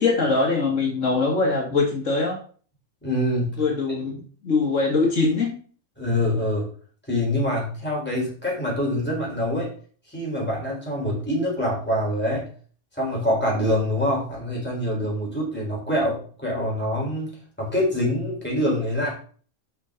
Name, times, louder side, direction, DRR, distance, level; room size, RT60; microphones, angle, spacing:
voice 1, 0.0-2.4 3.6-5.5, left 3 dB, 75° left, 0 dB, 2.3 m, -22 dB
voice 2, 3.0-3.6 6.0-6.6 7.1-9.7 10.1-12.4 12.9-19.1, left 1 dB, 10° left, -4 dB, 4.3 m, -25 dB
11.0 x 5.9 x 3.9 m, 0.44 s
omnidirectional pair, 1.3 m